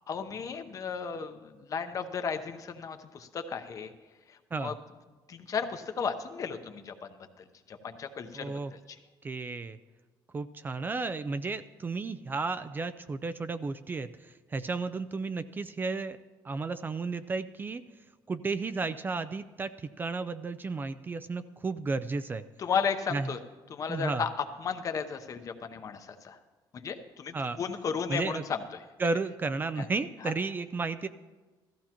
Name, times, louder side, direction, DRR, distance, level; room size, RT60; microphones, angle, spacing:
voice 1, 0.1-3.9 4.6-4.7 5.3-6.9 7.7-9.0 22.6-23.4 23.7-24.3 24.6-26.4 26.7-28.6 29.8-29.9 30.2-30.3, left 6 dB, 40° left, 8 dB, 0.8 m, -34 dB
voice 2, 8.3-8.7 9.2-9.8 10.3-16.2 16.4-17.8 18.3-19.7 20.0-22.4 23.1-23.3 23.9-24.3 27.3-27.6 28.1-28.4 29.0-31.1, right 3 dB, 25° right, 12 dB, 0.4 m, -33 dB
16.0 x 14.0 x 2.9 m, 1.3 s
cardioid pair, 125°, 9 cm